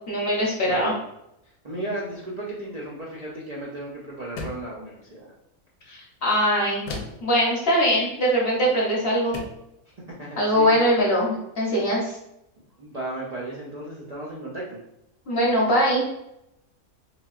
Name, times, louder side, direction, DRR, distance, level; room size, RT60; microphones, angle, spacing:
voice 1, 0.1-1.0 5.9-6.8 7.2-9.4 10.4-12.1 15.3-16.0, equal, 50° left, -4 dB, 0.9 m, -22 dB
voice 2, 0.6-1.0 1.6-5.3 10.2-10.8 12.8-14.8, right 1 dB, 70° right, -5 dB, 0.3 m, -35 dB
sound 1, 4.4-4.8 6.9-7.3 8.6-8.8 9.3-9.7, left 3 dB, 90° left, 1.1 m, -35 dB
3.8 x 2.2 x 2.3 m, 0.84 s
omnidirectional pair, 1.5 m